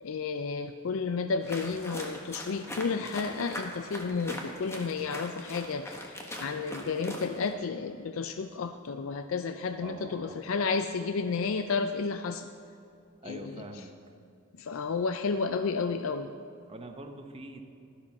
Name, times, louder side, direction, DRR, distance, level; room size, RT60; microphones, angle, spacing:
voice 1, 0.0-12.5 13.2-13.6 14.6-16.3, left 4 dB, 70° left, 8 dB, 0.5 m, -32 dB
sound 1, 1.4-7.5, equal, 15° left, 1.3 m, -41 dB
voice 2, 9.8-10.4 13.2-13.9 16.7-17.6, right 2 dB, 25° right, 5 dB, 0.9 m, -44 dB
12.5 x 12.0 x 4.2 m, 2.6 s
head